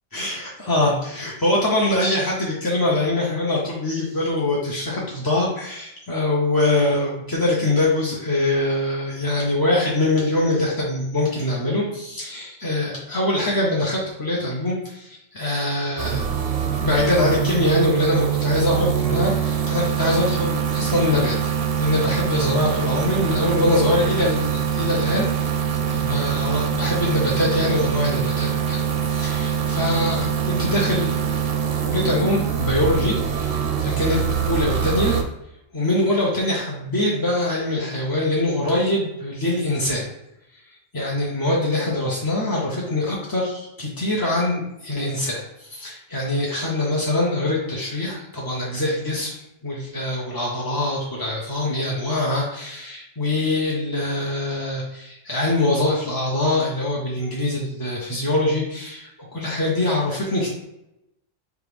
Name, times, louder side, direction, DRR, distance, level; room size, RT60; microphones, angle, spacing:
voice 1, 0.1-16.2 16.8-25.3 25.9-28.8 29.0-31.2 31.9-35.2 35.7-40.1 40.9-49.4 49.6-60.5, left 1 dB, 30° left, -4 dB, 0.4 m, -23 dB
sound 1, 16.0-35.2, right 8 dB, 60° right, 0.7 m, -24 dB
4.6 x 2.6 x 3.4 m, 0.84 s
omnidirectional pair, 1.3 m